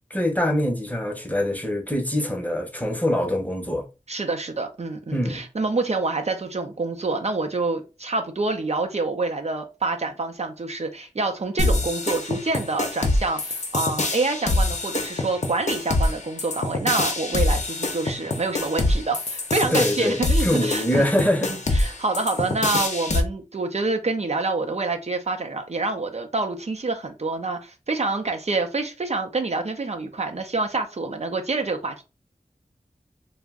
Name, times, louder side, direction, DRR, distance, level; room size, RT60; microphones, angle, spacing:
voice 1, 0.1-3.8 5.1-5.4 19.7-22.0, left 1 dB, 10° left, 0.7 m, -24 dB
voice 2, 4.1-21.1 21.4-32.0, right 3 dB, 50° right, 0.5 m, -27 dB
sound 1, 11.6-23.2, left 2 dB, 55° left, 0.6 m, -25 dB
2.5 x 2.0 x 3.5 m
wide cardioid pair, 45°, 14 cm